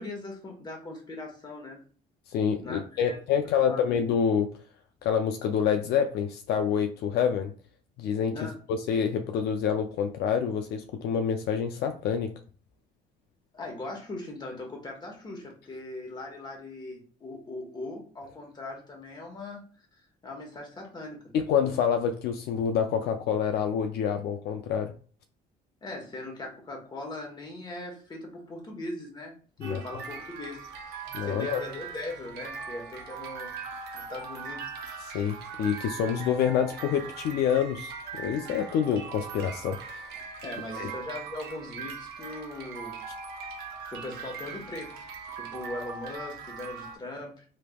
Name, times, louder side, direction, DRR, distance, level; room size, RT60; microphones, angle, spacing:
voice 1, 0.0-1.8 2.6-3.8 8.3-8.5 13.5-19.6 19.9-21.3 25.8-29.3 29.6-30.7 31.2-33.5 33.9-35.2 40.4-43.0 43.9-45.0 45.3-47.4, left 2 dB, 25° left, 1 dB, 1.2 m, -40 dB
voice 2, 2.3-4.5 5.0-7.5 8.0-8.4 8.7-12.3 21.3-24.9 29.7-29.8 31.1-31.6 35.1-40.1 40.8-40.9, left 7 dB, 75° left, 6 dB, 0.4 m, -27 dB
sound 1, 29.6-47.0, right 5 dB, 75° right, 0.8 m, -40 dB
3.4 x 3.0 x 2.3 m, 0.42 s
cardioid pair, 110°, 17 cm